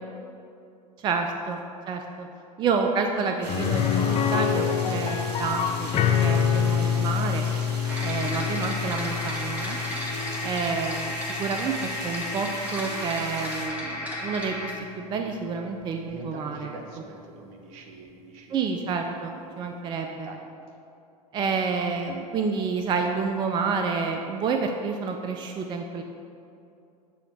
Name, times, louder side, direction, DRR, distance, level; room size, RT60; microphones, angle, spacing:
voice 1, 1.0-1.6 1.9-2.3 2.6-5.9 6.2-7.5 8.0-9.8 10.4-11.1 11.4-16.7 18.5-20.3 21.3-26.0, right 5 dB, 25° right, 4 dB, 0.4 m, -29 dB
sound 1, 3.4-13.7, right 2 dB, 85° right, 1.4 m, -40 dB
sound 2, 3.5-13.3 13.6-13.7 16.1-16.2, left 7 dB, 30° left, 0.6 m, -27 dB
sound 3, 7.9-14.7, left 1 dB, 5° right, 1.3 m, -33 dB
voice 2, 10.1-10.4 16.1-18.8 19.4-19.9 20.2-20.4 21.4-21.7, right 4 dB, 55° right, 2 dB, 1.0 m, -45 dB
7.0 x 2.9 x 5.9 m, 2.7 s
hypercardioid pair, 90°, 20 cm